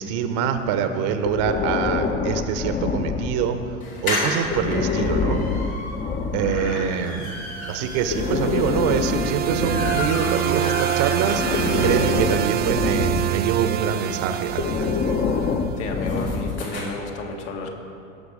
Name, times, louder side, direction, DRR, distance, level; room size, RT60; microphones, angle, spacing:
voice 1, 0.0-3.6 4.0-5.4 6.3-14.9, right 7 dB, 50° right, 8 dB, 1.0 m, -25 dB
Breathing, 1.2-3.7 4.4-6.8 7.9-10.7 11.3-13.5 14.5-16.8, left 5 dB, 25° left, 0.9 m, -26 dB
sound 1, 3.8-12.4 12.8-12.9 13.1-13.2 13.4-16.8, left 1 dB, 80° left, 3.0 m, -32 dB
sound 2, 7.6-15.8, right 11 dB, 25° right, 0.5 m, -26 dB
voice 2, 15.8-17.7, left 3 dB, 60° left, 2 dB, 1.8 m, -32 dB
17.5 x 6.4 x 5.0 m, 2.5 s
figure-of-eight pair, 80°, 40 cm